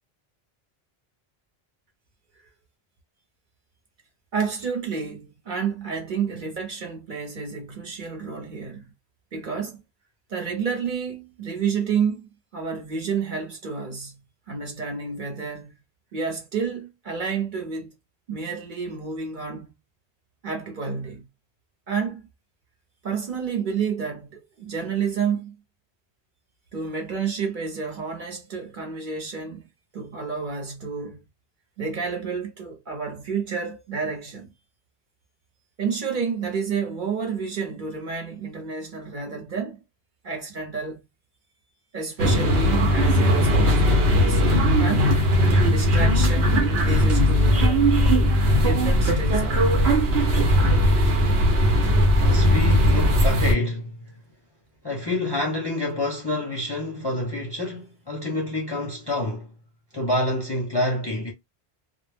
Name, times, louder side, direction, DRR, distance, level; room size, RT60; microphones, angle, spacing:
voice 1, 4.3-8.8 9.3-9.8 10.3-14.2 14.5-15.7 16.1-17.9 18.3-19.7 20.4-21.3 21.9-22.2 23.0-25.5 26.7-29.7 29.9-31.2 31.8-34.5 35.8-39.8 40.2-41.0 41.9-44.4 44.8-45.2 45.7-48.0 48.6-49.8, right 5 dB, 50° right, 0.8 m, -30 dB
sound 1, 42.2-53.5, equal, 80° right, 0.9 m, -19 dB
voice 2, 52.2-54.0 54.8-59.5 59.9-61.3, left 1 dB, 30° left, 0.5 m, -27 dB
2.2 x 2.0 x 3.2 m
omnidirectional pair, 1.1 m